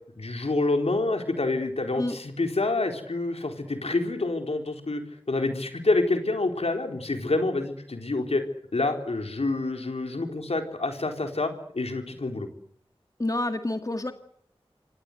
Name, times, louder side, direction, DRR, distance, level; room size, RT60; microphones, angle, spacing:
voice 1, 0.2-5.0 5.3-8.4 8.7-12.5, left 2 dB, 80° left, 5 dB, 4.2 m, -27 dB
voice 2, 13.2-14.1, left 1 dB, 35° left, 7 dB, 2.0 m, -28 dB
27.0 x 23.5 x 8.1 m, 0.65 s
wide cardioid pair, 60°, 10 cm